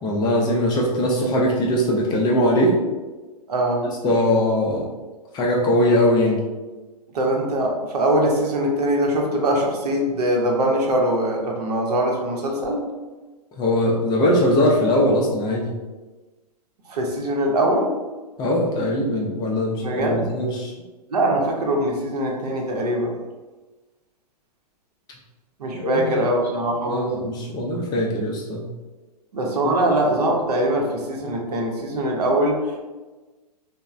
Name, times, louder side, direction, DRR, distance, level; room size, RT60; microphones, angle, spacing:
voice 1, 0.0-2.8 4.0-4.9 5.3-6.4 13.6-15.7 18.4-20.7 25.8-26.2 26.9-28.7 29.6-29.7, left 1 dB, 20° left, -2 dB, 0.4 m, -21 dB
voice 2, 3.5-3.9 7.1-12.8 16.9-17.9 19.8-20.3 21.1-23.2 25.6-27.1 29.3-32.8, right 1 dB, 75° right, 0 dB, 0.7 m, -22 dB
3.0 x 2.0 x 2.4 m, 1.2 s
hypercardioid pair, 120°, 20 cm